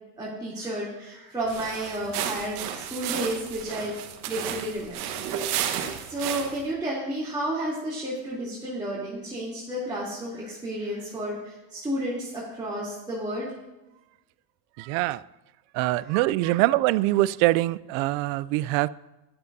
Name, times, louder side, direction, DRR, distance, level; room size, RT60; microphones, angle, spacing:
voice 1, 0.2-3.9 4.3-5.2 5.6-13.5, right 1 dB, 10° right, -8 dB, 3.1 m, -32 dB
sound 1, 1.4-6.7, right 9 dB, 85° right, 1.4 m, -33 dB
voice 2, 14.8-15.2 15.7-18.9, right 18 dB, 65° right, 19 dB, 0.5 m, -23 dB
15.0 x 11.0 x 2.7 m, 1.0 s
supercardioid pair, 130°, 44 cm